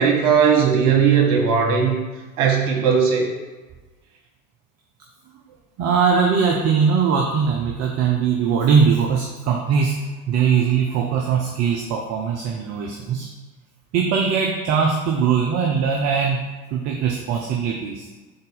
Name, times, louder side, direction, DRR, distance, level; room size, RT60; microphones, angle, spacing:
voice 1, 0.0-2.0 2.4-3.3, right 6 dB, 55° right, 0 dB, 1.3 m, -17 dB
voice 2, 5.8-13.3 13.9-18.1, right 6 dB, 35° right, 1 dB, 0.6 m, -21 dB
4.0 x 3.4 x 3.9 m, 1.3 s
figure-of-eight pair, 80°, 44 cm